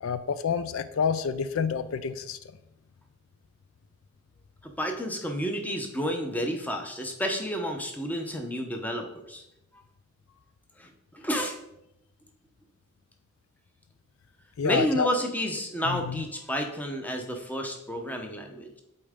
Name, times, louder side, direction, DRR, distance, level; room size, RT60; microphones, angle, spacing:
voice 1, 0.0-2.4 14.6-15.1 15.9-16.2, left 6 dB, 75° left, 12 dB, 0.4 m, -28 dB
voice 2, 4.6-9.4 10.8-11.6 14.6-18.8, equal, 10° left, 3 dB, 0.8 m, -31 dB
8.4 x 4.2 x 3.7 m, 0.82 s
head